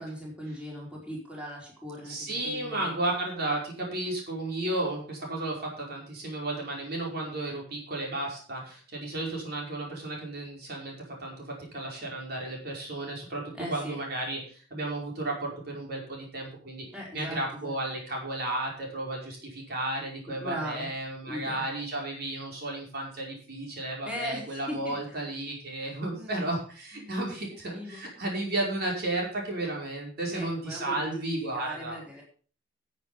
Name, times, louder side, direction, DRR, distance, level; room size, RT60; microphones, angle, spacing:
voice 1, 0.0-3.0 13.5-14.0 16.9-17.7 20.3-20.9 21.3-21.6 24.0-24.9 26.1-26.3 26.9-28.1 30.3-31.2 31.5-32.2, equal, 5° right, -4 dB, 4.5 m, -39 dB
voice 2, 2.0-10.9 11.2-16.9 17.1-32.0, right 2 dB, 55° right, -1 dB, 5.1 m, -33 dB
13.5 x 7.5 x 5.7 m, 0.41 s
head